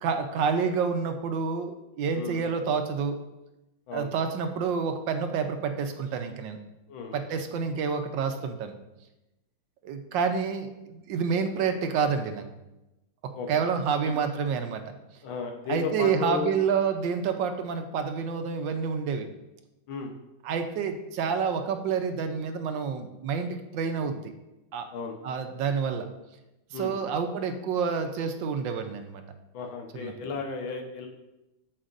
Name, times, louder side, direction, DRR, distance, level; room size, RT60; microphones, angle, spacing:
voice 1, 0.0-3.2 3.9-6.6 7.1-8.7 9.8-12.4 13.2-15.0 15.7-19.3 20.4-24.3 24.7-24.9 25.2-26.1 26.7-29.2 29.9-30.1, right 6 dB, 75° right, 7 dB, 1.4 m, -28 dB
voice 2, 2.1-2.6 3.9-4.1 6.9-7.4 13.3-13.5 14.1-14.2 15.2-16.5 19.9-20.1 24.9-25.2 26.7-26.9 29.5-31.1, left 5 dB, 85° left, 2 dB, 1.8 m, -34 dB
8.6 x 7.1 x 2.6 m, 0.97 s
omnidirectional pair, 2.1 m